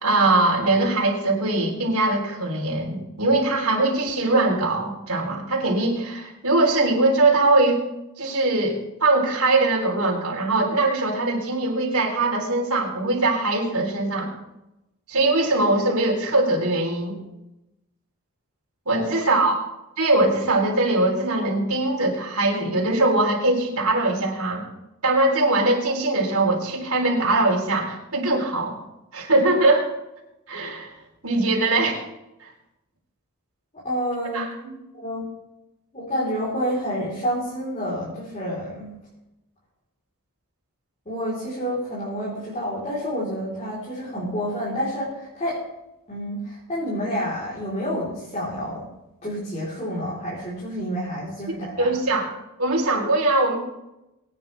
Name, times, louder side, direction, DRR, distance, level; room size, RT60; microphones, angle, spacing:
voice 1, 0.0-7.9 8.2-14.3 15.1-17.2 18.9-19.6 20.0-24.6 25.0-28.8 29.1-29.9 30.5-30.9 31.2-32.1 32.4-32.5 34.3-34.5 51.8-52.3 52.6-53.6, right 2 dB, 75° right, -2 dB, 3.8 m, -21 dB
voice 2, 33.8-35.2 35.9-38.9 41.1-45.6 46.1-48.9 49.2-51.9, equal, 30° left, -7 dB, 4.2 m, -29 dB
23.0 x 9.3 x 3.5 m, 0.93 s
head